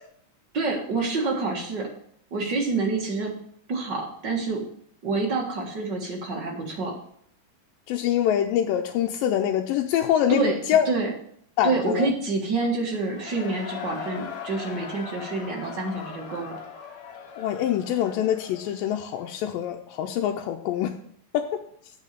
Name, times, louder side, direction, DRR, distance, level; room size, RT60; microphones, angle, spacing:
voice 1, 0.5-1.9 2.3-3.4 3.7-4.6 5.0-7.0 10.3-10.6 10.9-11.1 11.6-16.6, right 3 dB, 40° right, -1 dB, 1.8 m, -27 dB
voice 2, 7.9-10.9 11.6-12.1 17.4-20.9 21.3-21.5, left 10 dB, 90° left, 3 dB, 2.3 m, -24 dB
Cheering / Crowd, 12.9-19.6, left 6 dB, 65° left, 2.0 m, -40 dB
8.4 x 5.5 x 6.7 m, 0.64 s
omnidirectional pair, 4.0 m